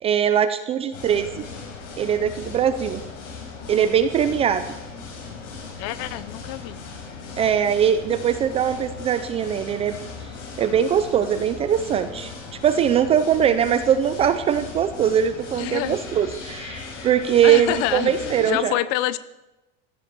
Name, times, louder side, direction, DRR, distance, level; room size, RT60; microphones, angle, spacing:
voice 1, 0.0-1.5 2.0-3.0 3.7-4.6 7.4-10.0 10.6-12.3 12.6-18.7, right 9 dB, 15° right, 10 dB, 0.4 m, -21 dB
sound 1, 0.9-18.5, left 4 dB, 85° left, 7.0 m, -38 dB
voice 2, 5.8-6.8 13.6-13.8 15.6-16.0 17.4-19.2, left 15 dB, 40° left, 17 dB, 0.7 m, -27 dB
16.5 x 11.0 x 6.7 m, 1.0 s
supercardioid pair, 165°, 36 cm